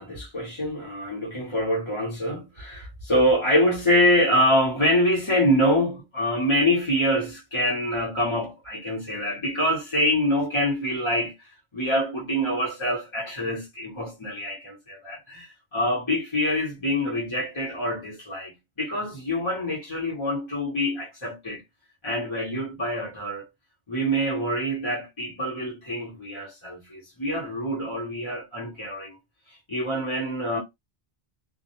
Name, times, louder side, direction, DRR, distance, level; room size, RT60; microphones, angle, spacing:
voice 1, 0.0-11.3 11.7-21.6 22.0-23.5 23.9-29.1 29.7-30.6, equal, 30° left, 0.9 m, -25 dB
2.2 x 2.1 x 2.9 m
omnidirectional pair, 1.1 m